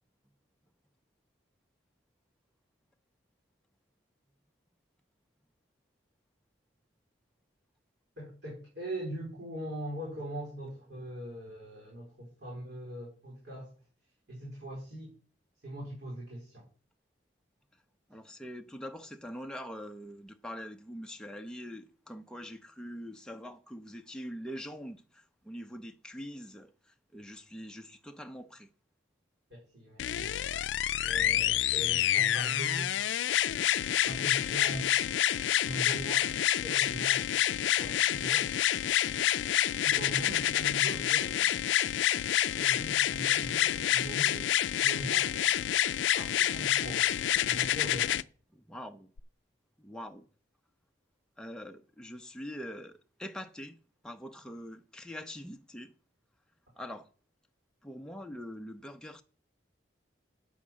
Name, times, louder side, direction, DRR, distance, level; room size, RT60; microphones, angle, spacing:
voice 1, 8.2-13.7 14.3-15.1 15.6-16.6 29.5-30.6 31.0-33.1 34.0-34.9 35.6-37.4 37.7-38.5 39.8-41.5 42.5-44.5 44.8-45.7 46.1-48.2, right 1 dB, 70° right, 4.4 m, -41 dB
voice 2, 18.1-28.7 48.5-49.1 49.8-50.3 51.4-53.8 54.0-55.9 56.8-57.1 57.8-59.2, equal, 5° left, 0.6 m, -44 dB
sound 1, 30.0-48.2 49.2-49.3, left 11 dB, 85° left, 0.4 m, -28 dB
8.5 x 6.0 x 7.3 m
head